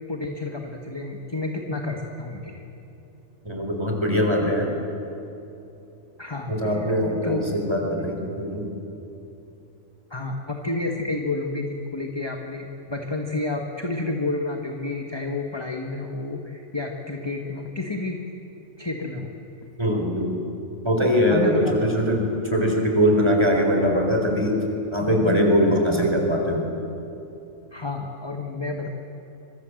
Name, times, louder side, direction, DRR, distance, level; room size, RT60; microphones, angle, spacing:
voice 1, 0.1-2.6 6.2-6.9 7.2-7.4 10.1-18.2 18.8-19.3 21.3-21.9 27.7-28.9, left 2 dB, 20° left, 2 dB, 1.5 m, -30 dB
voice 2, 3.4-4.7 6.5-8.7 19.8-20.4 20.8-24.6 24.9-26.7, equal, 20° right, 2 dB, 4.2 m, -22 dB
25.5 x 24.0 x 7.8 m, 2.9 s
omnidirectional pair, 1.5 m